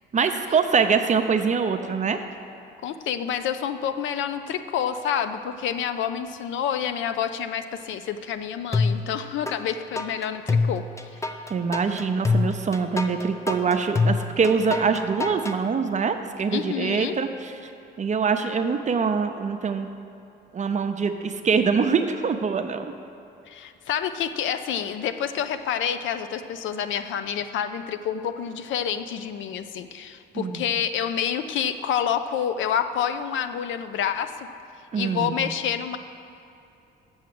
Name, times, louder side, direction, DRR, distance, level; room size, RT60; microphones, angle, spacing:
voice 1, 0.1-2.2 11.5-17.7 18.0-19.9 20.5-22.9 30.3-30.6 34.9-35.4, right 5 dB, 35° right, 7 dB, 0.6 m, -24 dB
voice 2, 2.8-10.8 16.5-17.2 23.5-34.5 34.9-36.0, left 8 dB, 75° left, 10 dB, 0.5 m, -28 dB
sound 1, 8.7-9.6 10.0-15.6, left 3 dB, 15° left, 0.5 m, -25 dB
7.1 x 6.3 x 7.6 m, 2.7 s
cardioid pair, 90°, 20 cm